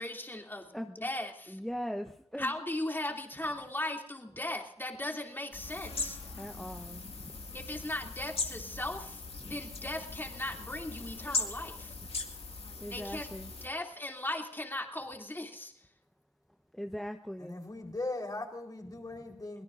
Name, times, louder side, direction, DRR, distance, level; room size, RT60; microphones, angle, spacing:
voice 1, 0.0-1.6 2.4-6.2 7.5-12.0 12.9-15.7, left 1 dB, 20° left, 2 dB, 2.7 m, -38 dB
voice 2, 1.5-2.5 6.4-7.4 9.4-9.6 12.8-13.5 16.7-17.6, equal, 5° left, 4 dB, 1.0 m, -40 dB
sound 1, 5.5-13.7, left 3 dB, 60° left, 2.1 m, -39 dB
voice 3, 17.4-19.6, left 2 dB, 35° left, 1 dB, 4.0 m, -39 dB
23.5 x 17.5 x 2.6 m, 0.72 s
cardioid pair, 50°, 11 cm